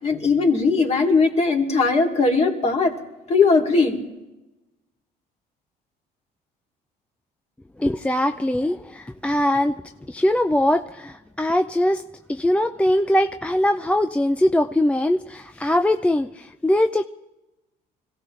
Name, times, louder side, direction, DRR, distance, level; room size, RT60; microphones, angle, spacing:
voice 1, 0.0-3.0 3.3-4.0, left 4 dB, 40° left, 1 dB, 2.7 m, -19 dB
voice 2, 7.8-9.7 10.1-12.0 12.3-17.1, left 1 dB, 5° left, 7 dB, 0.5 m, -21 dB
25.5 x 16.5 x 3.3 m, 1.0 s
cardioid pair, 110°, 17 cm